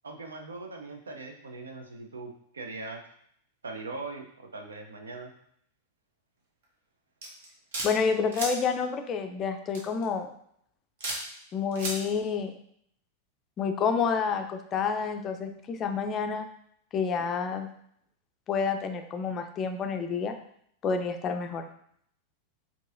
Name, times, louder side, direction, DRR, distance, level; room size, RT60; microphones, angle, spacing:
voice 1, 0.0-3.0 3.6-5.3, right 3 dB, 70° right, 4 dB, 0.5 m, -40 dB
sound 1, 7.2-7.9 8.3-8.5 9.7-10.0 11.0-11.2 11.7-12.0, right 2 dB, 55° right, 1.0 m, -33 dB
voice 2, 7.8-10.3 11.5-12.5 13.6-16.5 16.9-17.7 18.5-20.4 20.8-21.7, left 5 dB, 30° left, 6 dB, 0.4 m, -29 dB
4.5 x 2.7 x 2.6 m, 0.69 s
figure-of-eight pair, 90°, 0 cm